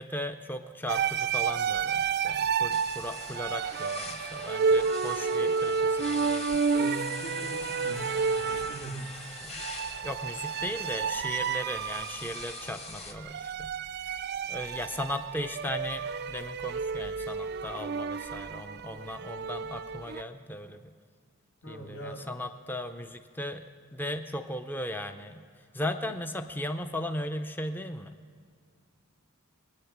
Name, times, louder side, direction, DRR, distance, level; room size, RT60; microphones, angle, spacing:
voice 1, 0.0-6.5 9.4-9.6 10.0-13.7 14.0-14.2 14.5-20.9 21.7-23.7 23.9-25.4 25.7-28.2, left 1 dB, 10° left, 7 dB, 0.5 m, -37 dB
sound 1, 0.9-20.2, right 5 dB, 50° right, 0.4 m, -31 dB
sound 2, 2.7-13.1, left 4 dB, 30° left, 1.3 m, -44 dB
voice 2, 6.8-8.1 8.5-9.1 18.9-19.0 21.6-22.2 26.1-26.2, right 1 dB, 85° left, 1 dB, 2.2 m, -41 dB
21.0 x 9.6 x 7.2 m, 2.1 s
head